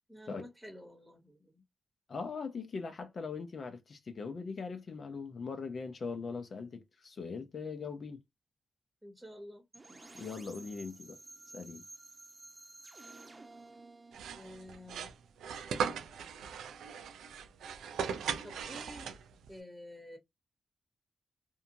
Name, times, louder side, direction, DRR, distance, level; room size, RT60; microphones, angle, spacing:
voice 1, 0.1-1.6 9.0-10.0 14.3-15.1 18.4-19.1 19.5-20.2, equal, 10° right, 1.0 m, -50 dB
voice 2, 2.1-8.2 10.1-11.2 11.5-11.8, left 4 dB, 60° left, 0.6 m, -40 dB
sound 1, 9.7-15.5, right 2 dB, 35° right, 0.7 m, -53 dB
sound 2, 14.1-19.5, right 7 dB, 85° right, 0.4 m, -38 dB
2.7 x 2.2 x 2.6 m
supercardioid pair, 45°, 0 cm